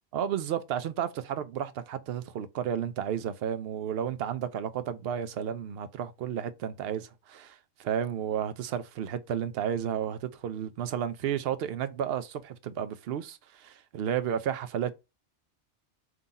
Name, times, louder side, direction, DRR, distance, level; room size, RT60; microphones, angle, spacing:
voice 1, 0.1-14.9, right 9 dB, 65° right, 0.7 m, -32 dB
3.8 x 2.8 x 3.9 m
omnidirectional pair, 1.2 m